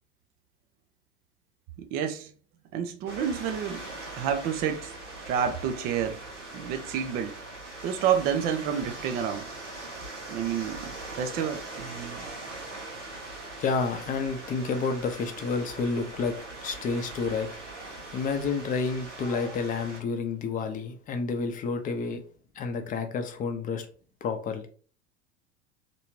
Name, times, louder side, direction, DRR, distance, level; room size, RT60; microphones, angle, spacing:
voice 1, 1.8-2.3 2.7-3.9 4.1-4.9 5.2-6.2 6.5-7.4 7.8-9.5 9.9-12.3, right 8 dB, 30° right, 0.4 m, -29 dB
sound 1, 3.1-20.0, right 2 dB, 85° right, 0.9 m, -41 dB
voice 2, 13.6-16.4 16.6-22.2 22.5-23.9 24.2-24.7, left 4 dB, 25° left, 0.6 m, -30 dB
3.2 x 2.6 x 3.0 m
figure-of-eight pair, 80°, 35 cm